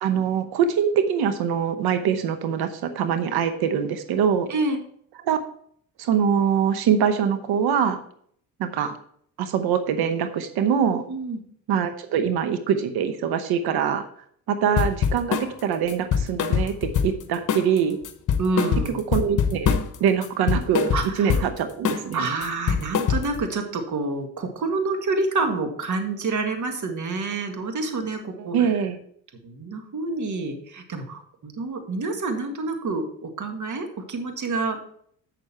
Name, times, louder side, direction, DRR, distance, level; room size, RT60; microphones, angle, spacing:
voice 1, 0.0-4.5 5.2-5.4 6.0-8.0 8.6-9.0 9.4-11.0 11.7-14.1 14.5-18.0 18.9-22.3 28.5-29.0, right 7 dB, 70° right, 9 dB, 0.9 m, -23 dB
voice 2, 11.1-11.4 18.4-19.0 20.9-21.5 22.1-28.7 29.4-34.8, right 3 dB, 45° right, 5 dB, 1.8 m, -28 dB
sound 1, 14.8-15.5 15.9-17.2 17.5-17.8 18.0-20.0 20.2-21.5 21.8-22.1 22.4-23.4, left 7 dB, 50° left, 1.1 m, -23 dB
7.9 x 6.7 x 4.3 m, 0.63 s
supercardioid pair, 70°, 40 cm